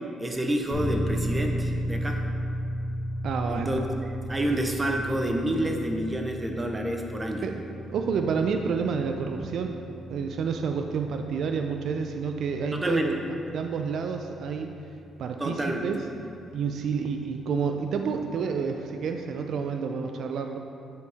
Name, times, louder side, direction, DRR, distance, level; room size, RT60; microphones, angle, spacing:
voice 1, 0.2-2.2 3.5-7.4 12.7-13.2 15.4-15.9, right 1 dB, 20° right, 2 dB, 0.8 m, -28 dB
sound 1, 0.7-17.4, equal, 55° left, 1.1 m, -35 dB
voice 2, 3.2-3.8 7.4-9.8 10.1-13.1 13.5-14.8 15.2-16.0 16.5-20.6, right 5 dB, 70° right, 5 dB, 0.4 m, -29 dB
9.5 x 4.7 x 3.5 m, 2.7 s
cardioid pair, 90°, 0 cm